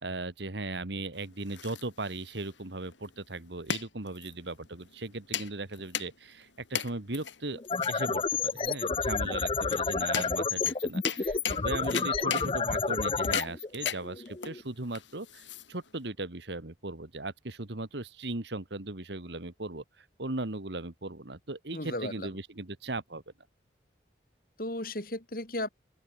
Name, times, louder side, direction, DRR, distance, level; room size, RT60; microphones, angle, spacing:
voice 1, 0.0-7.6 7.9-23.2, right 2 dB, 70° right, 1.8 m, -38 dB
sound 1, 1.1-16.1, left 8 dB, 85° left, 2.9 m, -38 dB
sound 2, 7.5-14.6, left 4 dB, 30° left, 0.5 m, -30 dB
voice 2, 21.7-22.3 24.6-25.7, left 1 dB, 50° left, 4.5 m, -35 dB
open air
head